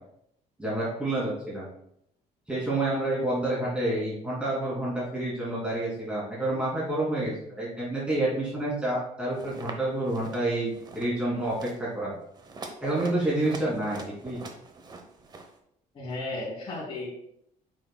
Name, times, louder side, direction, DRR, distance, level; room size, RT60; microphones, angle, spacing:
voice 1, 0.6-1.7 2.5-12.1 12.8-14.4, right 1 dB, 5° right, -8 dB, 2.7 m, -29 dB
sound 1, 9.4-9.8 10.1-10.4 10.7-11.1 11.4-11.8 12.3-15.5, right 3 dB, 30° right, 0.9 m, -43 dB
voice 2, 15.9-17.1, left 2 dB, 35° left, -6 dB, 2.8 m, -34 dB
8.5 x 6.3 x 2.3 m, 0.73 s
cardioid pair, 140°, 15 cm